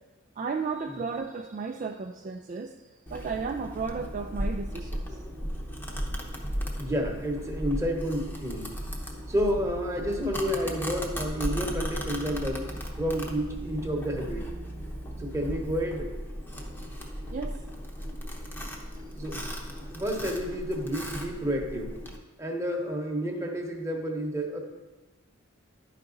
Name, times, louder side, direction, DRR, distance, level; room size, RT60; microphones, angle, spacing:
voice 1, 0.4-2.8 3.1-5.1 17.3-17.6, right 4 dB, 40° right, 3 dB, 0.3 m, -34 dB
Domestic sounds home sounds, 3.1-22.2, equal, 10° left, 0.8 m, -36 dB
voice 2, 6.8-8.8 9.3-12.6 13.0-14.5 15.2-16.1 19.1-19.5 19.8-22.0 22.4-24.6, equal, 15° right, 1 dB, 1.0 m, -30 dB
11.5 x 4.9 x 3.8 m, 1.2 s
head